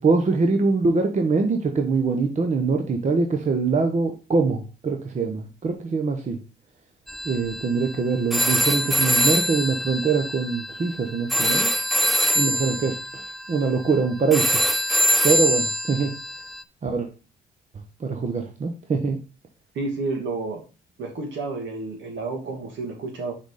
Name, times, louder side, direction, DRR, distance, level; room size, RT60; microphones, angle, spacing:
voice 1, 0.0-6.4 7.2-11.7 12.3-14.6 15.2-16.2 16.8-17.1 18.0-19.2, right 4 dB, 35° right, 4 dB, 1.0 m, -23 dB
sound 1, 7.1-16.6, equal, ahead, 0.3 m, -24 dB
voice 2, 19.7-20.6 21.0-23.3, right 3 dB, 70° right, 1 dB, 2.3 m, -30 dB
6.1 x 4.1 x 4.9 m, 0.33 s
cardioid pair, 90°, 20 cm